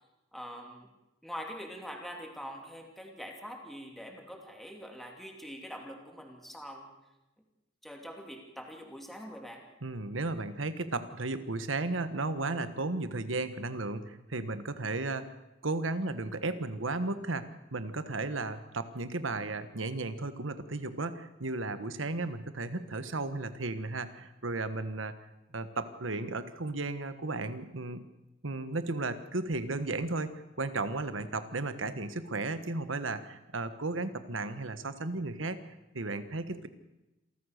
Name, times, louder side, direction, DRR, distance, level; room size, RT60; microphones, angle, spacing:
voice 1, 0.3-0.9 1.2-6.9 7.8-9.6, equal, ahead, 1 dB, 2.9 m, -44 dB
voice 2, 9.8-15.3 15.6-25.1 25.5-28.0 28.4-35.6 35.9-36.7, right 3 dB, 85° right, 11 dB, 1.4 m, -34 dB
27.5 x 14.5 x 6.6 m, 0.99 s
head